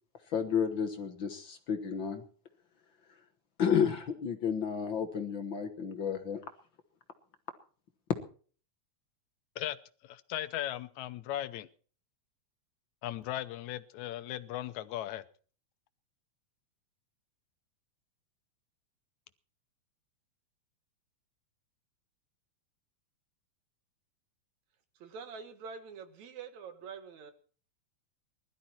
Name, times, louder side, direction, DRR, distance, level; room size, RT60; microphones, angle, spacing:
voice 1, 0.3-2.2 3.6-6.4, left 7 dB, 50° left, 7 dB, 1.7 m, -31 dB
voice 2, 10.0-11.7 13.0-15.2, left 13 dB, 80° left, 13 dB, 2.2 m, -37 dB
voice 3, 25.0-27.3, right 5 dB, 75° right, 9 dB, 2.9 m, -45 dB
20.5 x 12.5 x 4.4 m, 0.42 s
omnidirectional pair, 3.3 m